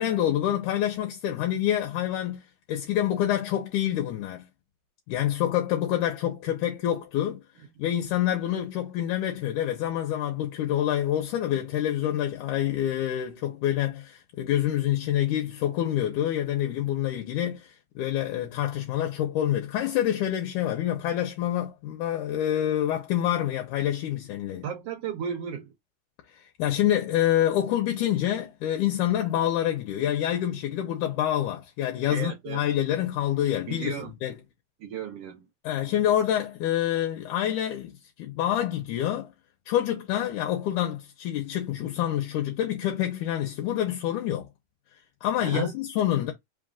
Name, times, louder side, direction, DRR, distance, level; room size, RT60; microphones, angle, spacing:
voice 1, 0.0-2.4 2.7-4.5 5.1-7.4 7.8-24.6 26.3-33.9 34.2-34.4 35.6-37.9 38.2-39.3 39.7-44.5 45.2-46.3, left 11 dB, 75° left, 2.2 m, -27 dB
voice 2, 24.6-25.7 32.0-32.6 33.7-34.1 34.8-35.5 45.4-45.7, right 8 dB, 75° right, 1.4 m, -34 dB
5.3 x 2.5 x 3.6 m
omnidirectional pair, 3.8 m